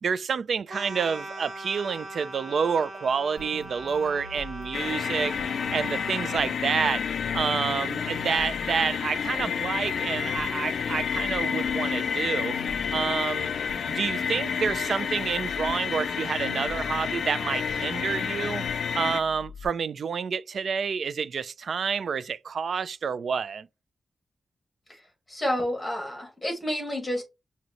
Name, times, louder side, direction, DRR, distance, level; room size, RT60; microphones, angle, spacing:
voice 1, 0.0-5.3 5.7-7.0 7.3-12.5 12.9-13.5 13.9-18.6 18.9-23.7, right 6 dB, 65° right, 0.3 m, -28 dB
sound 1, 0.7-6.5, right 1 dB, 45° right, 1.7 m, -40 dB
sound 2, 3.4-19.7, left 1 dB, 80° right, 0.9 m, -45 dB
sound 3, 4.7-19.2, left 7 dB, 80° left, 0.3 m, -30 dB
voice 2, 25.3-27.2, equal, 15° left, 2.2 m, -29 dB
6.1 x 2.7 x 2.9 m
wide cardioid pair, 125°, 0 cm